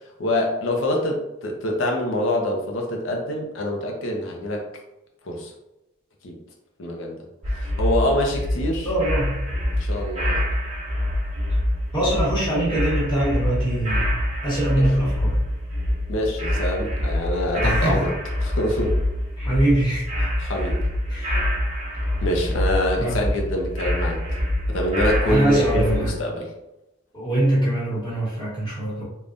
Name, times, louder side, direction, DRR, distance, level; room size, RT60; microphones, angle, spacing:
voice 1, 0.2-4.7 5.2-5.5 6.2-6.4 6.8-7.2 7.5-8.9 9.7-10.4 14.7-14.9 16.1-18.1 18.4-19.0 20.4-20.8 22.2-24.2 24.7-26.5, left 1 dB, 65° left, 1 dB, 0.6 m, -25 dB
sound 1, 7.4-26.1, left 1 dB, 30° right, 0.8 m, -25 dB
voice 2, 8.8-9.4 11.5-11.6 11.9-14.1 14.4-15.3 17.6-18.0 19.4-20.3 21.1-21.4 23.0-23.2 25.2-26.1 27.1-29.0, right 1 dB, 20° left, -7 dB, 1.2 m, -23 dB
3.4 x 2.3 x 2.5 m, 0.91 s
head